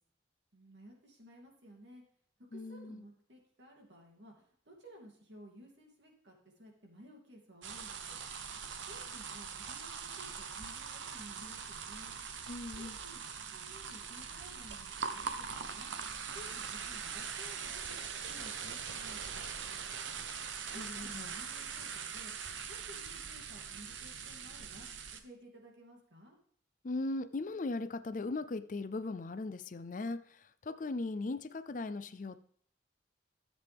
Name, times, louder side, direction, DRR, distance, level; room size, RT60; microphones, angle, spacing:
voice 1, 0.5-2.0 2.5-8.2 8.8-12.2 12.7-13.2 13.5-15.9 16.3-20.0 20.7-22.3 22.7-26.4, equal, 70° right, 0 dB, 2.8 m, -55 dB
voice 2, 2.5-3.0 12.5-13.0 20.7-21.3 26.8-32.4, left 2 dB, 45° left, 14 dB, 0.4 m, -38 dB
sound 1, 7.6-25.2, right 6 dB, 90° right, 0.9 m, -42 dB
13.5 x 7.5 x 3.5 m, 0.62 s
head